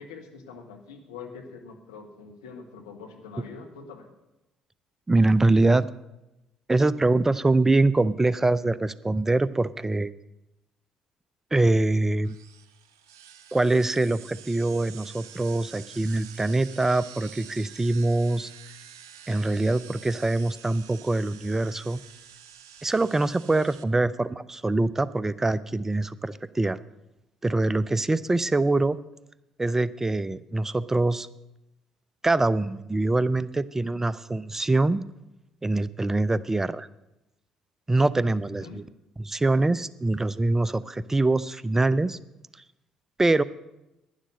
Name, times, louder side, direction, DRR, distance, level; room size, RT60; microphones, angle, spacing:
voice 1, 0.0-4.1 24.0-24.4 38.4-38.8, left 5 dB, 80° left, 2 dB, 1.5 m, -44 dB
voice 2, 5.1-5.9 6.7-10.1 11.5-12.4 13.5-18.5 19.3-22.0 22.8-26.8 27.4-29.0 29.6-31.3 32.2-35.0 35.6-36.9 37.9-38.8 39.2-42.2 43.2-43.4, right 2 dB, 20° right, 18 dB, 0.5 m, -24 dB
sound 1, 12.2-23.8, right 9 dB, 80° right, 0.5 m, -48 dB
11.5 x 10.5 x 6.4 m, 0.93 s
figure-of-eight pair, 50°, 2 cm